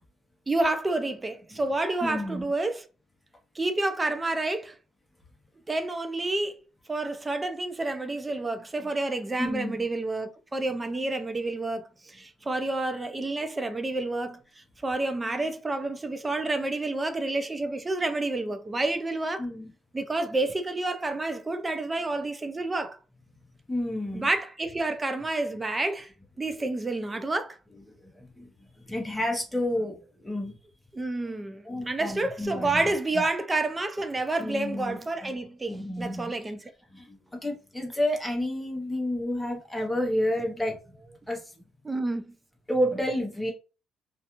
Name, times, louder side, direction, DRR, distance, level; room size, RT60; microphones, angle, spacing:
voice 1, 0.5-2.8 3.6-4.7 5.7-6.6 6.9-14.4 14.8-19.5 19.9-23.0 24.1-26.1 26.4-27.6 30.9-36.7 41.8-42.3, right 2 dB, 15° right, 0.3 m, -29 dB
voice 2, 2.0-2.5 9.4-9.8 19.4-19.7 23.7-24.3 28.0-28.5 28.9-30.5 31.6-32.8 33.1-33.3 34.4-35.4 35.7-36.3 36.9-40.8 41.3-41.5 42.7-43.5, left 1 dB, 5° left, 0.7 m, -30 dB
2.3 x 2.3 x 2.9 m
cardioid pair, 155°, 0 cm